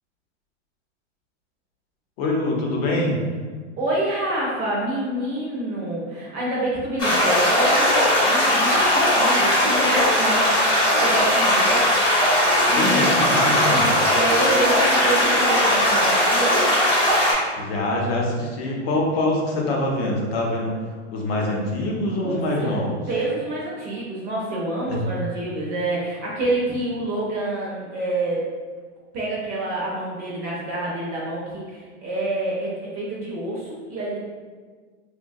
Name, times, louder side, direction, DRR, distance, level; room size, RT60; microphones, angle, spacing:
voice 1, 2.2-3.2 12.7-13.9 17.6-20.7 21.1-23.0 24.9-25.0, left 1 dB, 55° left, -1 dB, 0.7 m, -24 dB
voice 2, 3.8-10.4 11.0-11.8 12.6-13.3 13.7-16.7 22.2-22.7 23.1-28.4 29.1-34.2, right 1 dB, 25° right, -5 dB, 0.5 m, -27 dB
sound 1, 7.0-17.3, left 1 dB, 15° left, 0.7 m, -19 dB
3.0 x 2.2 x 2.6 m, 1.5 s
supercardioid pair, 140°, 36 cm